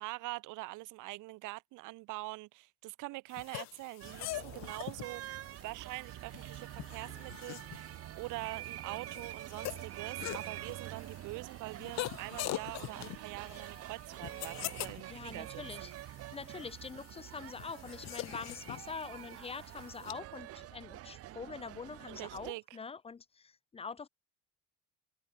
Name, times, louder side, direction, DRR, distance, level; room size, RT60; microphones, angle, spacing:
voice 1, 0.0-5.2 5.6-16.0 22.1-22.8, right 21 dB, 70° right, 4.3 m, -44 dB
sound 1, 3.3-20.1, left 18 dB, 55° left, 1.4 m, -44 dB
sound 2, 4.0-22.5, right 14 dB, 50° right, 1.7 m, -47 dB
voice 2, 15.1-15.9 16.3-24.1, left 5 dB, 20° left, 1.3 m, -44 dB
open air
cardioid pair, 170°, 31 cm